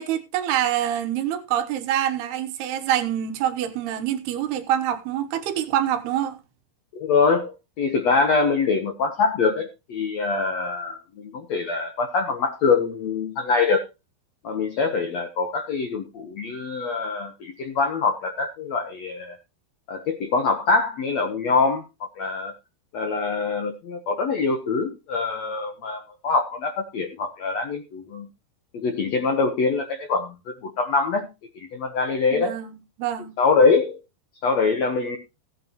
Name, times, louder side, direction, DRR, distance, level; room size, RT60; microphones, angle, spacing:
voice 1, 0.0-6.4 32.3-33.4, right 11 dB, 75° right, 3.0 m, -26 dB
voice 2, 6.9-7.5 7.8-13.8 14.4-19.4 19.9-21.8 22.2-22.5 22.9-28.3 28.7-30.3 30.6-31.3 31.5-32.5 33.4-34.0 34.4-35.2, left 4 dB, 75° left, 1.5 m, -24 dB
16.5 x 9.2 x 3.1 m
omnidirectional pair, 5.0 m